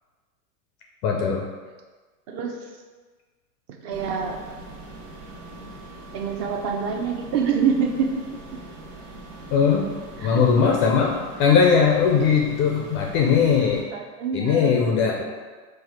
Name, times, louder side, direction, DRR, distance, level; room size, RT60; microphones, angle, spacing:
voice 1, 1.0-1.4 9.5-9.9 10.2-11.1 11.4-13.8 14.3-15.2, left 6 dB, 30° left, 0 dB, 0.4 m, -19 dB
voice 2, 3.8-4.4 6.1-8.1 10.2-10.4 13.7-15.0, right 6 dB, 45° right, 3 dB, 0.7 m, -26 dB
sound 1, 3.9-13.8, right 2 dB, 65° right, 1.1 m, -41 dB
4.1 x 2.4 x 4.6 m, 1.4 s
hypercardioid pair, 110°, 44 cm